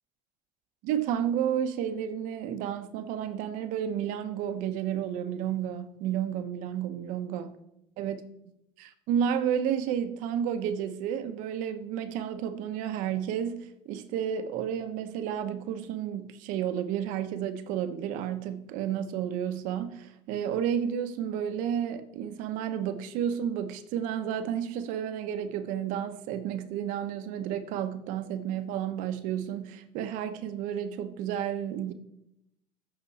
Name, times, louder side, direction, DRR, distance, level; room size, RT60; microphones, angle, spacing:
voice 1, 0.8-7.6 8.0-8.2 8.8-31.9, right 9 dB, 80° right, 1.0 m, -31 dB
14.5 x 6.2 x 4.1 m
cardioid pair, 135°, 13 cm